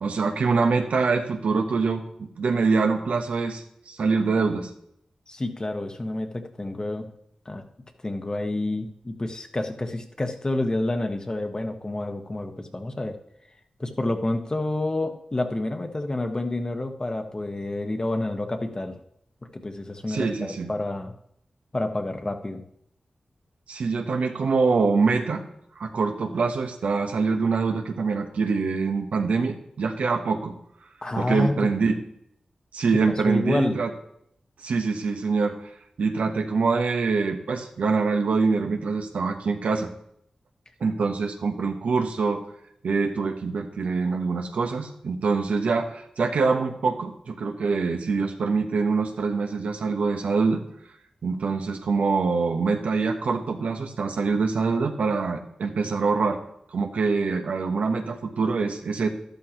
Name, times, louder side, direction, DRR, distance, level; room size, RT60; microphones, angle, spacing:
voice 1, 0.0-4.7 20.1-20.7 23.7-25.4 25.8-30.5 31.2-32.0 32.7-33.9 34.6-35.6 36.0-39.9 40.8-42.4 42.8-50.6 51.2-56.4 56.7-59.1, right 4 dB, 80° right, 4 dB, 1.1 m, -24 dB
voice 2, 5.3-7.1 7.4-7.6 8.0-13.1 13.8-19.0 19.5-21.1 21.7-22.6 31.0-31.7 33.1-33.8, left 2 dB, 35° left, 5 dB, 1.4 m, -29 dB
12.0 x 12.0 x 3.0 m, 0.74 s
cardioid pair, 45°, 2 cm